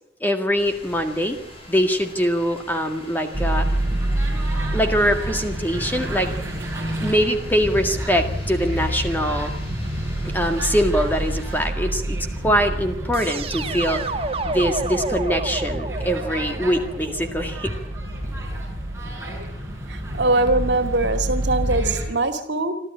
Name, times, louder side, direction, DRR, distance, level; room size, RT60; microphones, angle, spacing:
voice 1, 0.2-1.4 1.7-3.7 4.7-6.3 7.0-9.5 10.3-14.0 14.4-17.7, equal, 10° left, 5 dB, 1.9 m, -23 dB
sound 1, 0.6-11.7, left 1 dB, 30° left, 7.2 m, -44 dB
sound 2, 3.3-22.1, right 1 dB, 15° right, 6.9 m, -28 dB
sound 3, 13.1-18.1, right 3 dB, 30° right, 1.3 m, -30 dB
voice 2, 19.9-22.7, right 2 dB, 70° right, 7 dB, 2.6 m, -22 dB
27.5 x 13.5 x 9.9 m, 0.77 s
head